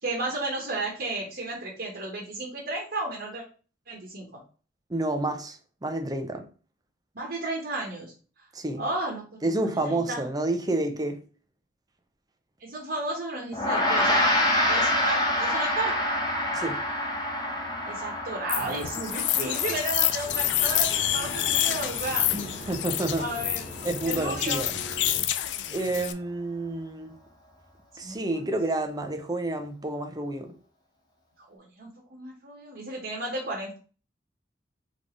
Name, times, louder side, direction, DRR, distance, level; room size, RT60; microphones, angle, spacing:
voice 1, 0.0-3.4 3.9-4.4 7.1-8.1 8.8-9.5 9.8-10.3 12.6-14.4 14.7-16.0 17.9-22.3 22.6-22.7 23.2-23.7 24.1-24.7 28.0-28.5 31.4-33.8, right 2 dB, 55° right, 1.3 m, -33 dB
voice 2, 4.9-6.5 8.5-8.8 9.4-11.2 16.5-16.8 22.3-23.3 23.8-24.7 25.7-27.2 28.0-30.5, right 2 dB, 20° right, 0.6 m, -29 dB
Gong, 13.5-23.1, left 1 dB, 20° left, 1.0 m, -28 dB
sound 1, 18.5-26.1, left 12 dB, 70° left, 0.4 m, -28 dB
sound 2, 20.2-25.2, equal, 45° left, 1.3 m, -41 dB
3.7 x 3.5 x 3.8 m
head